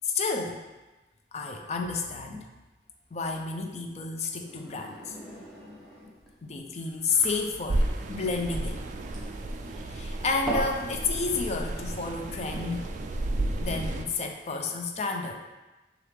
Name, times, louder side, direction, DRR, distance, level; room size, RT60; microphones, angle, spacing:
voice 1, 0.0-0.6 1.3-2.5 3.1-5.2 6.4-8.8 9.9-12.9 13.6-15.4, left 4 dB, 40° left, 4 dB, 0.4 m, -31 dB
sound 1, 4.3-10.8, right 1 dB, 5° left, 0.9 m, -40 dB
sound 2, 7.7-14.1, right 1 dB, 45° right, 0.3 m, -32 dB
6.2 x 2.5 x 3.3 m, 1.1 s
head